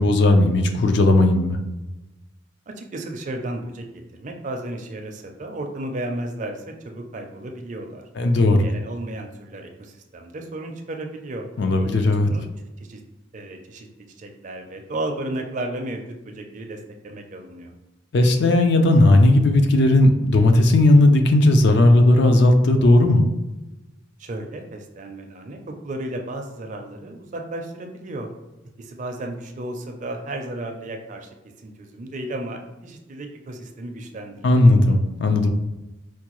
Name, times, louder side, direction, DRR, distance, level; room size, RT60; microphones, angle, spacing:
voice 1, 0.0-1.6 8.2-8.7 11.6-12.3 18.1-23.3 34.4-35.5, left 2 dB, 60° left, 5 dB, 0.4 m, -16 dB
voice 2, 2.7-3.8 4.1-8.0 8.5-11.5 11.8-12.4 12.8-13.0 13.3-13.9 14.2-17.7 24.2-28.3 28.8-34.6, right 1 dB, 40° right, 3 dB, 0.4 m, -34 dB
4.5 x 2.2 x 3.0 m, 1.0 s
head